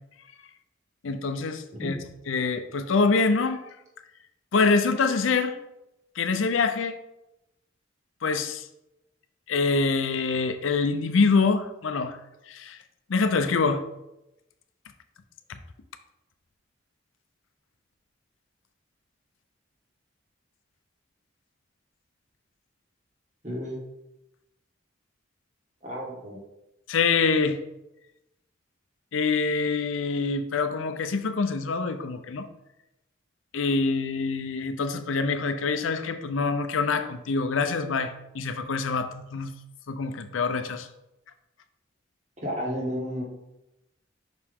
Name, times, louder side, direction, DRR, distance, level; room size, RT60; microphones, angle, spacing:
voice 1, 1.0-2.0 2.3-3.6 4.5-5.6 6.2-7.0 8.2-8.6 9.5-12.2 12.5-12.8 13.1-13.8 26.9-27.6 29.1-32.5 33.5-39.5 39.9-40.9, left 4 dB, 85° left, 9 dB, 0.6 m, -25 dB
voice 2, 23.4-23.8 25.8-26.4 42.4-43.2, equal, 35° right, -3 dB, 1.7 m, -32 dB
5.7 x 4.8 x 3.6 m, 0.90 s
head